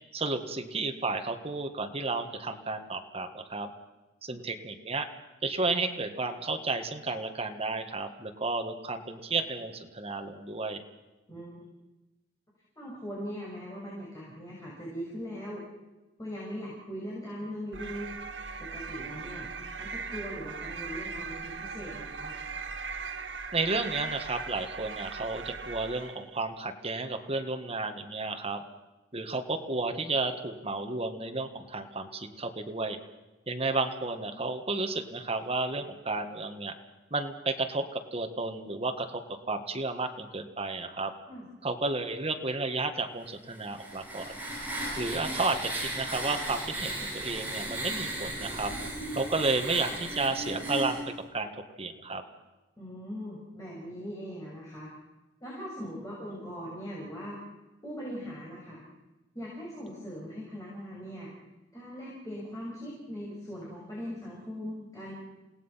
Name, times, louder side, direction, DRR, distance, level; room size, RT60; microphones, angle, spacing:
voice 1, 0.1-3.7 4.2-5.1 5.4-10.8 23.5-28.6 29.1-33.0 33.5-36.7 37.1-39.2 39.5-41.1 41.6-44.4 45.0-48.7 49.1-51.0 51.3-52.2, right 3 dB, 35° right, 6 dB, 1.8 m, -32 dB
voice 2, 12.8-15.6 16.2-18.1 18.6-19.5 19.8-22.3 41.3-41.5 52.8-54.9 55.4-57.4 57.8-58.8 59.3-61.3 61.7-65.1, equal, 20° left, -5 dB, 6.5 m, -40 dB
sound 1, 17.7-26.3, right 5 dB, 70° right, 1.0 m, -39 dB
sound 2, 43.5-51.0, right 1 dB, 10° right, 7.7 m, -36 dB
28.0 x 18.0 x 5.8 m, 1.1 s
head